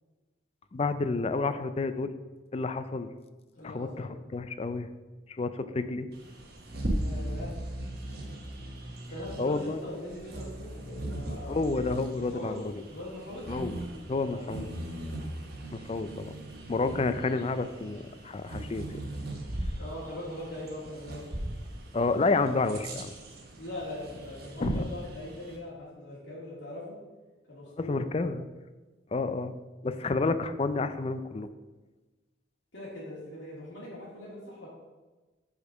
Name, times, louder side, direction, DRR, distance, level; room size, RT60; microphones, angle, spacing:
voice 1, 0.7-2.1 2.5-3.1 3.6-4.9 5.3-6.1 9.4-9.8 11.5-12.7 13.5-13.8 14.1-14.7 15.7-16.3 16.7-18.8 21.9-23.1 24.6-24.8 27.8-28.4 29.1-29.5 29.8-31.5, left 3 dB, 35° left, 11 dB, 0.4 m, -30 dB
voice 2, 3.6-4.1 6.9-7.5 9.1-11.6 12.3-12.6 12.9-13.5 14.1-15.1 19.8-21.2 23.6-27.0 27.5-28.1 32.7-34.7, left 1 dB, 80° left, -7 dB, 2.6 m, -41 dB
Bird vocalization bird call bird song, 6.1-25.6, right 1 dB, 55° right, 1.2 m, -38 dB
6.7 x 5.1 x 5.2 m, 1.2 s
head